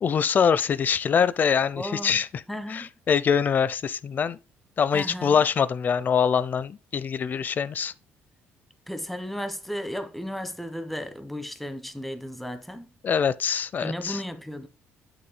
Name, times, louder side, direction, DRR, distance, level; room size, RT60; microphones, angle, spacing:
voice 1, 0.0-2.4 2.7-4.4 4.8-7.9 13.0-14.2, left 7 dB, 40° left, 0.6 m, -24 dB
voice 2, 1.8-2.2 2.5-2.9 4.9-5.4 8.9-12.9 13.8-14.7, equal, 5° left, 1.3 m, -34 dB
8.4 x 7.1 x 2.2 m
cardioid pair, 100°, 5 cm